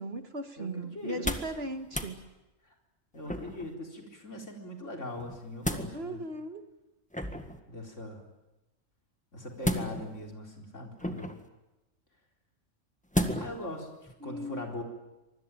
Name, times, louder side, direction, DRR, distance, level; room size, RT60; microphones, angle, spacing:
voice 1, 0.0-2.2 5.9-6.6 14.2-14.7, right 1 dB, 50° right, 8 dB, 1.9 m, -37 dB
voice 2, 0.6-1.3 2.6-2.7 3.1-6.2 7.3-8.2 9.3-11.3 13.4-14.8, left 1 dB, 65° left, 2 dB, 4.6 m, -41 dB
sound 1, 1.0-1.6 1.9-2.1 3.3-3.7 5.2-5.9 7.1-7.6 9.6-10.2 11.0-11.5 13.1-13.6 14.1-14.2, equal, 5° left, 1.7 m, -32 dB
25.5 x 21.0 x 9.2 m, 1.0 s
omnidirectional pair, 1.3 m